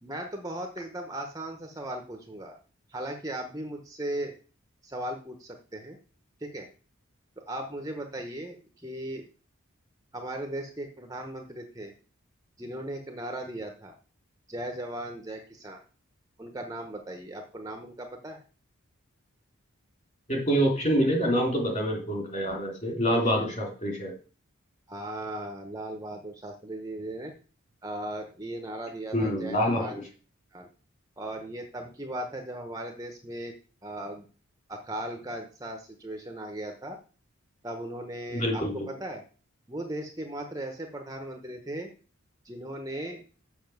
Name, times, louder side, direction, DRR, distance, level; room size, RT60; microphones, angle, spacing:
voice 1, 0.0-2.6 2.9-4.4 4.8-6.0 6.4-6.7 7.4-9.3 10.1-11.9 12.6-14.0 14.5-15.8 16.4-18.4 23.1-23.4 24.9-27.3 27.8-30.0 30.5-30.7 31.2-33.5 33.8-34.3 34.7-37.0 37.6-39.2 39.7-41.9 42.4-43.2, right 1 dB, 15° right, 4 dB, 1.0 m, -37 dB
voice 2, 20.3-24.1 29.1-30.0 38.3-38.9, equal, 35° left, 1 dB, 3.4 m, -26 dB
7.1 x 6.3 x 7.9 m, 0.37 s
head